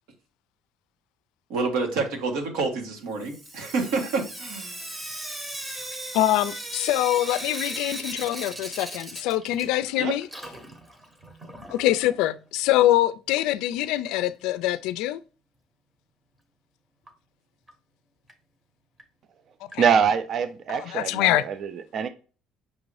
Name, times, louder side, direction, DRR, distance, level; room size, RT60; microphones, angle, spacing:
voice 1, 1.5-4.9 10.0-10.1, right 4 dB, 85° right, 1.3 m, -28 dB
Sink (filling or washing) / Drip, 3.2-9.9 10.2-12.1 13.3-13.4 13.7-13.8 14.1-14.2 17.1-17.2 17.7-17.8 18.3-18.4 19.0-19.1 19.7-19.8 20.7-20.8, right 1 dB, 15° right, 0.8 m, -37 dB
voice 2, 6.1-10.3 11.7-15.2 19.7-19.8 20.7-21.4, left 14 dB, 85° left, 0.3 m, -24 dB
voice 3, 19.8-22.1, right 7 dB, 45° right, 0.4 m, -24 dB
5.9 x 2.6 x 3.2 m
cardioid pair, 140°, 0 cm